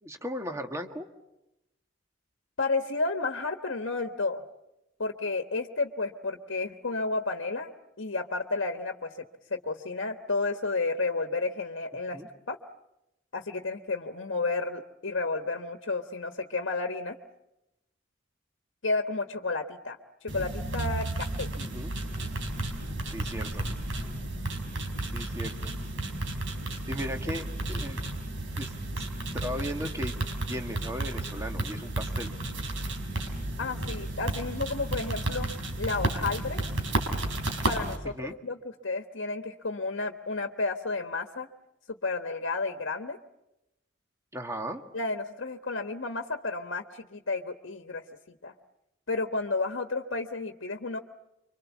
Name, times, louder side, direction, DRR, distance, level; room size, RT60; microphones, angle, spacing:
voice 1, 0.0-1.0 12.1-12.3 21.6-21.9 23.1-23.7 25.1-25.7 26.9-28.0 28.6-29.1 29.4-30.1 30.5-32.3 38.0-38.3 44.3-44.8, equal, 15° right, 5 dB, 1.7 m, -36 dB
voice 2, 2.6-4.4 5.0-9.1 9.5-12.2 12.5-12.6 13.3-17.2 18.8-21.5 33.6-35.5 35.8-36.6 37.7-41.5 41.9-43.2 44.9-48.5 49.1-51.0, left 3 dB, 80° left, 6 dB, 1.3 m, -32 dB
sound 1, 20.3-38.0, right 2 dB, 75° right, 4.7 m, -32 dB
26.0 x 25.0 x 7.3 m, 0.91 s
head